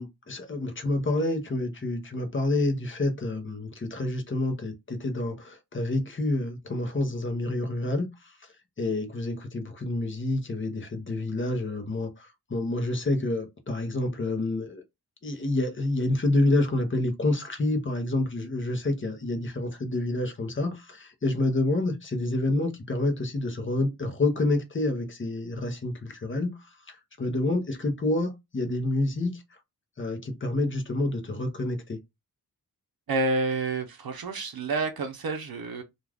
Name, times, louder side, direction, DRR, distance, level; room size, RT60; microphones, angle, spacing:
voice 1, 0.0-8.5 8.8-14.8 15.2-29.4 30.0-32.0, left 2 dB, 30° left, 0.7 m, -28 dB
voice 2, 33.1-35.8, right 3 dB, 65° right, 0.6 m, -29 dB
2.4 x 2.3 x 3.3 m
wide cardioid pair, 105°, 39 cm